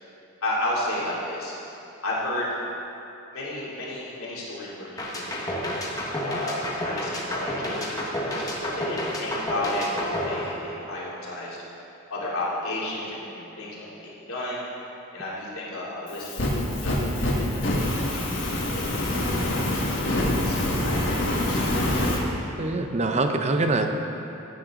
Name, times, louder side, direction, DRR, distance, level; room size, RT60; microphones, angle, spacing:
voice 1, 0.4-1.5 2.0-2.6 3.3-5.3 6.2-7.9 8.3-11.6 12.1-14.6 15.1-19.0 19.5-21.7, left 1 dB, 85° left, -6 dB, 3.0 m, -33 dB
sound 1, 5.0-11.2, equal, 15° left, 1.2 m, -30 dB
Fire, 16.1-22.2, left 1 dB, 55° left, 1.7 m, -25 dB
voice 2, 22.6-23.9, right 2 dB, 30° right, 5 dB, 0.7 m, -24 dB
15.5 x 9.2 x 3.8 m, 2.8 s
head